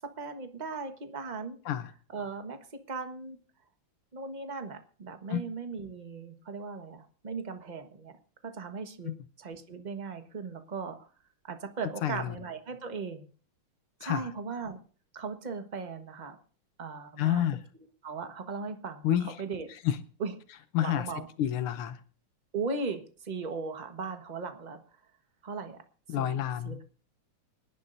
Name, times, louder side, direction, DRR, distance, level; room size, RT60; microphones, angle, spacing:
voice 1, 0.2-1.6 2.1-2.6 2.9-3.4 4.1-8.1 8.5-9.1 9.4-11.0 11.4-13.3 14.0-14.8 15.1-16.4 16.8-17.4 18.0-19.7 20.2-20.3 20.8-21.3 22.5-24.8 25.4-25.8 26.2-26.3 26.6-26.8, right 4 dB, 25° right, 1.1 m, -37 dB
voice 2, 12.0-12.4 14.0-14.3 17.2-17.6 19.0-19.4 19.7-20.0 20.7-21.1 21.4-22.0 26.1-26.8, left 11 dB, 85° left, 1.7 m, -29 dB
26.0 x 11.0 x 2.6 m
omnidirectional pair, 2.4 m